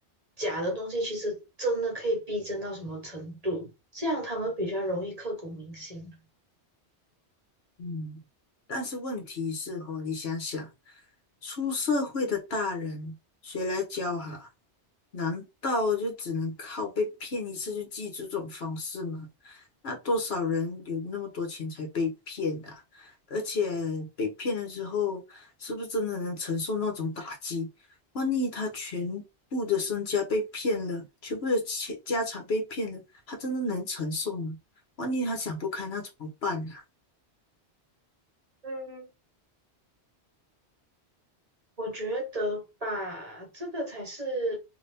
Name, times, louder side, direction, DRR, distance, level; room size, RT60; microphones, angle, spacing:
voice 1, 0.4-6.2 38.6-39.1 41.8-44.6, right 1 dB, 35° right, 1.2 m, -32 dB
voice 2, 7.8-8.2 8.7-10.9 11.4-13.2 13.4-14.5 15.1-27.7 28.1-29.2 29.5-33.0 33.3-34.6 35.0-36.8, left 3 dB, 65° left, 1.2 m, -31 dB
2.8 x 2.7 x 3.4 m
omnidirectional pair, 1.2 m